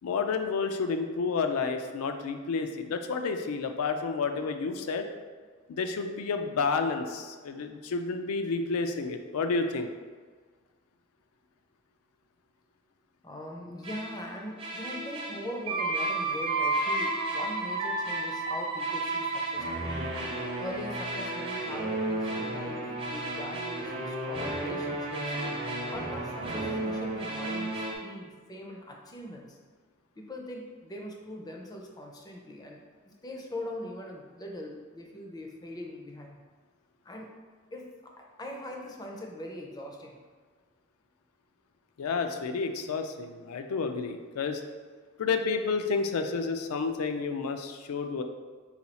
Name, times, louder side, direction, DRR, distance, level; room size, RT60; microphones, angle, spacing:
voice 1, 0.0-5.1 5.7-9.9 42.0-44.6 45.2-48.2, left 4 dB, 80° left, 6 dB, 0.4 m, -30 dB
voice 2, 13.2-19.9 20.6-25.4 25.9-29.6 30.2-36.4 37.0-37.3 37.7-40.2, left 1 dB, 20° left, 0 dB, 0.4 m, -41 dB
sound 1, 13.8-14.2 14.6-27.9, right 2 dB, 25° right, 0.6 m, -32 dB
4.2 x 2.3 x 4.1 m, 1.5 s
head